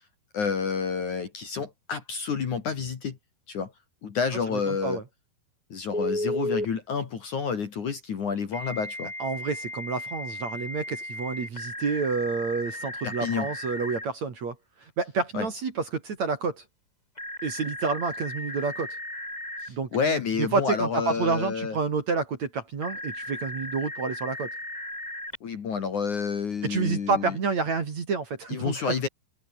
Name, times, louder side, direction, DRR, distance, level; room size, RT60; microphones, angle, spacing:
voice 1, 0.3-3.2 3.5-3.7 4.0-5.0 5.7-9.1 13.0-13.5 15.3-15.5 19.6-21.8 25.4-27.4 28.5-29.1, left 6 dB, 45° left, 3.3 m, -29 dB
voice 2, 4.5-5.0 9.2-14.6 15.0-16.6 17.4-18.9 19.7-24.5 26.6-28.9, right 4 dB, 40° right, 3.6 m, -29 dB
Telephone, 5.9-6.7 8.5-14.1 17.2-19.7 22.8-25.4, left 1 dB, 10° left, 7.5 m, -35 dB
open air
omnidirectional pair, 5.5 m